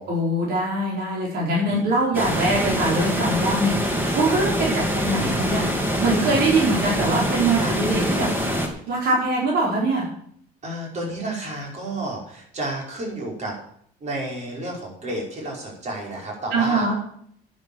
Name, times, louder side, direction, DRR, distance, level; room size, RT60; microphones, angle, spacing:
voice 1, 0.1-8.3 8.9-10.0 16.5-16.9, right 2 dB, 70° right, -3 dB, 4.9 m, -23 dB
sound 1, 2.1-8.7, equal, 10° right, 2.7 m, -24 dB
voice 2, 4.7-5.5 7.6-7.7 10.6-13.5 14.0-16.9, right 1 dB, 45° right, -2 dB, 5.6 m, -31 dB
10.5 x 9.1 x 7.3 m, 0.64 s
cardioid pair, 110°, 17 cm